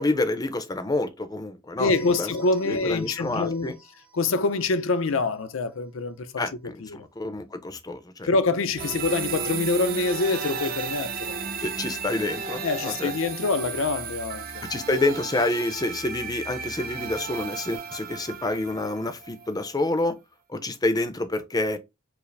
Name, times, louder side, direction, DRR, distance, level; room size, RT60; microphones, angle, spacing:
voice 1, 0.0-2.3 2.6-3.7 6.4-8.3 11.6-13.2 14.7-20.2 20.5-21.8, left 2 dB, 20° left, 0.5 m, -28 dB
voice 2, 1.8-3.7 4.1-7.1 8.2-11.3 12.6-14.5, left 3 dB, 75° left, 0.5 m, -25 dB
sound 1, 1.9-3.7 8.8-19.7, right 5 dB, 45° right, 0.7 m, -35 dB
4.8 x 2.0 x 3.2 m
head